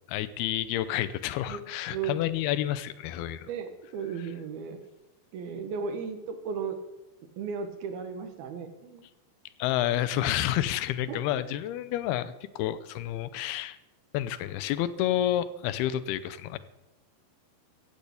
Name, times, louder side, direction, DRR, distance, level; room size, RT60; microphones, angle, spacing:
voice 1, 0.1-3.5 9.6-13.8 14.1-16.6, left 12 dB, 90° left, 14 dB, 2.8 m, -29 dB
voice 2, 3.5-4.8 5.3-6.8 7.4-9.1 11.1-11.2, right 6 dB, 80° right, 7 dB, 3.3 m, -35 dB
15.0 x 8.5 x 8.5 m, 0.96 s
omnidirectional pair, 4.4 m